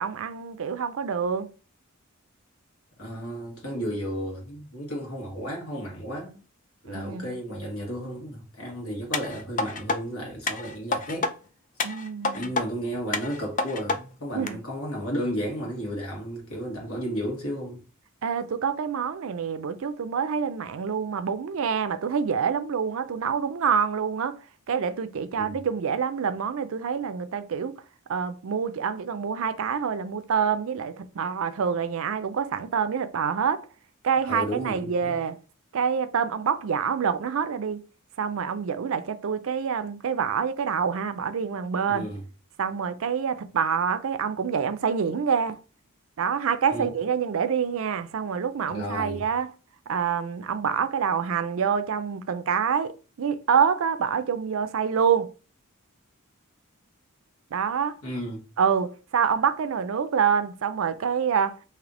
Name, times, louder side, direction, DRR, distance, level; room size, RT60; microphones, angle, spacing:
voice 1, 0.0-1.5 6.9-7.3 11.8-12.5 14.3-14.6 18.2-24.4 24.7-27.7 28.1-33.7 34.0-35.4 35.7-37.8 38.2-42.1 42.6-45.6 46.2-49.5 49.9-52.9 53.2-55.3 57.5-58.0 58.6-61.6, right 7 dB, 65° right, 0.4 m, -26 dB
voice 2, 3.0-6.4 6.8-11.3 12.3-17.8 25.4-25.6 34.2-35.2 41.9-42.2 46.7-46.8 48.7-49.2 58.0-58.4, equal, 70° left, 1.6 m, -33 dB
sound 1, 9.1-10.0 10.5-11.3 11.8-12.7 13.1-14.0 14.5-14.6, left 3 dB, 35° left, 0.4 m, -28 dB
3.3 x 2.7 x 3.7 m
head